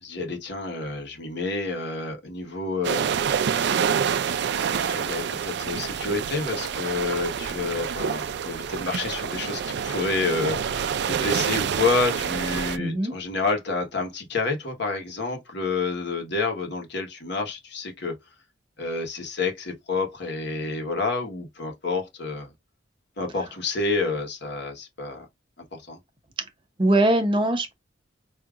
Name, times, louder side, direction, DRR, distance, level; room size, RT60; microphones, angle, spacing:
voice 1, 0.0-3.1 4.8-18.1 18.8-22.5 23.2-25.3 25.7-26.0, left 3 dB, 65° left, 1.2 m, -29 dB
sound 1, 2.8-12.8, right 7 dB, 60° right, 0.4 m, -27 dB
voice 2, 12.8-13.1 26.8-27.7, right 1 dB, 25° right, 0.8 m, -21 dB
4.9 x 2.7 x 2.4 m
head